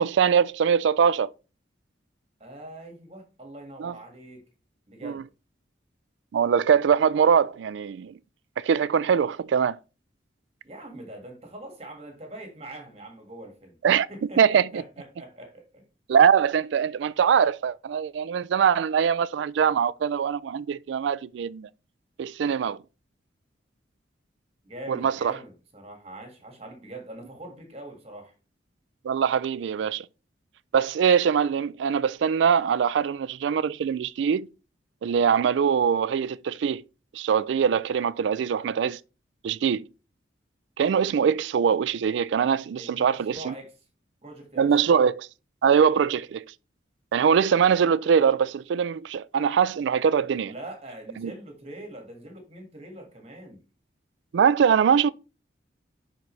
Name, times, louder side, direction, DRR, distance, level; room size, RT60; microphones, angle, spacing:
voice 1, 0.0-1.3 3.8-3.9 5.0-5.2 6.3-8.1 8.6-9.8 13.8-14.1 14.4-14.8 16.1-21.7 22.2-22.8 24.9-25.4 29.0-30.1 30.7-34.5 35.0-36.8 37.1-39.0 39.4-39.8 40.8-43.5 44.6-45.3 45.6-46.4 47.1-50.5 51.2-51.3 54.3-55.1, right 7 dB, 75° right, 0.3 m, -22 dB
voice 2, 2.4-4.4 4.9-5.2 10.6-13.8 14.1-15.9 24.6-28.3 42.8-43.7 44.2-44.7 50.4-53.6, right 1 dB, 35° right, 1.8 m, -43 dB
10.5 x 4.0 x 3.2 m
head